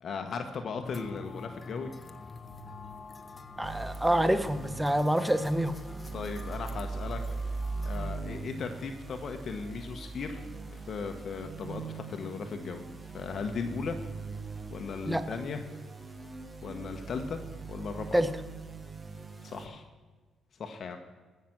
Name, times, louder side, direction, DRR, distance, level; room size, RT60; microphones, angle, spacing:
voice 1, 0.0-1.9 6.1-7.6 7.8-12.8 13.1-14.0 14.7-15.6 16.6-17.4 17.7-18.2 19.4-19.8 20.6-21.0, left 5 dB, 55° left, 5 dB, 1.0 m, -37 dB
sound 1, 0.8-8.1, left 3 dB, 25° left, 1.0 m, -47 dB
voice 2, 3.6-5.8 15.1-15.2 18.1-18.3, equal, 5° right, 12 dB, 0.8 m, -26 dB
sound 2, 3.6-19.7, right 4 dB, 25° right, 1.3 m, -40 dB
15.5 x 5.9 x 6.0 m, 1.4 s
cardioid pair, 90°, 0 cm